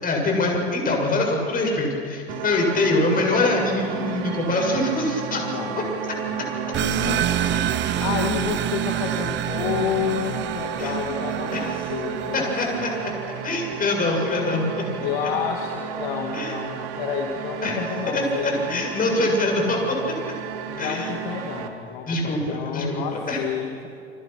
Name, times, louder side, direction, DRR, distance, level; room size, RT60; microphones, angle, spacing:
voice 1, 0.0-5.4 5.7-5.8 10.8-10.9 11.5-11.7 12.3-12.9 13.4-14.9 16.3-16.6 17.6-17.8 18.1-20.0 20.8-21.1 22.1-23.4, left 2 dB, 25° left, 1 dB, 7.5 m, -24 dB
sound 1, 2.3-21.7, right 8 dB, 55° right, 2.6 m, -32 dB
voice 2, 5.4-5.8 6.3-7.3 8.0-13.2 15.0-18.9 20.7-23.9, left 8 dB, 60° left, 2 dB, 2.7 m, -30 dB
sound 2, 6.7-13.0, right 11 dB, 35° right, 1.3 m, -28 dB
28.5 x 26.0 x 6.1 m, 2.5 s
hypercardioid pair, 100°, 32 cm